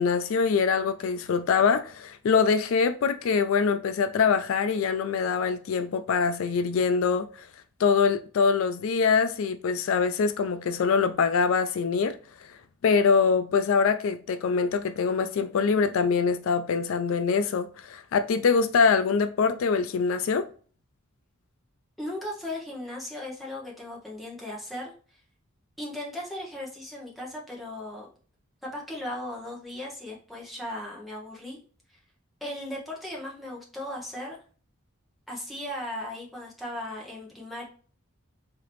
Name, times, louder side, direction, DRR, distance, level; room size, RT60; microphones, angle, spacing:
voice 1, 0.0-7.5 7.8-12.5 12.8-20.4, left 5 dB, 70° left, 0.3 m, -24 dB
voice 2, 22.0-25.2 25.8-28.1 28.6-31.6 31.9-32.0 32.4-34.4 35.3-37.7, left 1 dB, ahead, 1.1 m, -37 dB
3.6 x 3.5 x 3.0 m
head